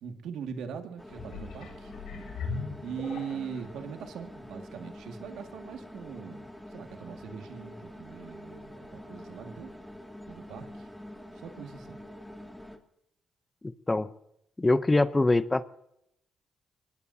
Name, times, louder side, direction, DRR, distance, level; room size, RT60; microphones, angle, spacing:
voice 1, 0.0-1.9 2.8-9.7 10.3-10.9 11.3-12.0, right 7 dB, 80° right, 5 dB, 2.1 m, -41 dB
sound 1, 1.0-12.8, left 1 dB, ahead, 2.4 m, -46 dB
sound 2, 1.1-3.7 4.3-4.4, left 4 dB, 75° left, 4.3 m, -39 dB
voice 2, 14.6-15.6, left 2 dB, 20° left, 14 dB, 0.7 m, -23 dB
24.0 x 19.5 x 2.8 m, 0.78 s
cardioid pair, 90°, 0 cm